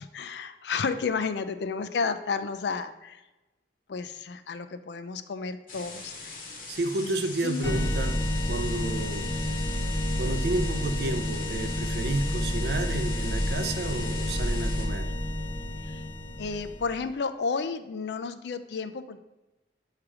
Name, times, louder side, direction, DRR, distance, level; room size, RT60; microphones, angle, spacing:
voice 1, 0.0-3.2 3.9-6.5 7.0-7.9 15.8-16.0 16.4-19.2, left 5 dB, 75° left, 0.4 m, -32 dB
sound 1, 5.7-14.9, left 2 dB, 50° left, 1.1 m, -39 dB
voice 2, 6.7-9.3 10.2-15.1, right 2 dB, 65° right, 0.5 m, -31 dB
sound 2, 7.6-17.0, left 1 dB, 20° left, 1.0 m, -30 dB
7.2 x 3.3 x 4.7 m
head